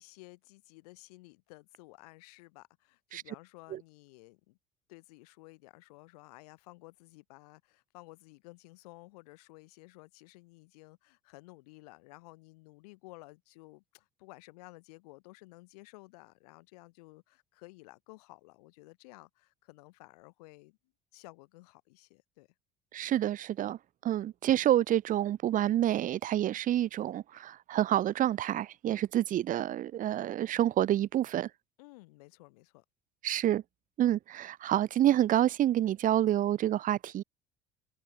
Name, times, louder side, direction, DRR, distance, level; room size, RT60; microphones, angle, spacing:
voice 1, 0.0-4.6 4.9-20.8 21.1-22.5 31.8-32.8, left 24 dB, 65° left, 6.6 m, -54 dB
voice 2, 22.9-23.8 24.0-31.5 33.2-33.6 34.0-37.2, right 12 dB, 40° right, 0.8 m, -28 dB
figure-of-eight pair, 60°, 21 cm